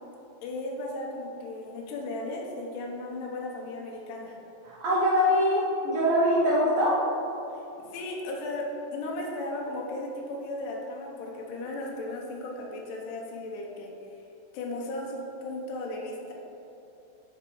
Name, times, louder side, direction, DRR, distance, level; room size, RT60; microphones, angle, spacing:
voice 1, 0.4-4.4 7.9-13.9 14.5-16.3, left 2 dB, 70° left, -2 dB, 2.3 m, -35 dB
voice 2, 4.6-7.2, equal, 80° right, -6 dB, 1.3 m, -23 dB
6.7 x 6.1 x 4.6 m, 2.9 s
omnidirectional pair, 4.0 m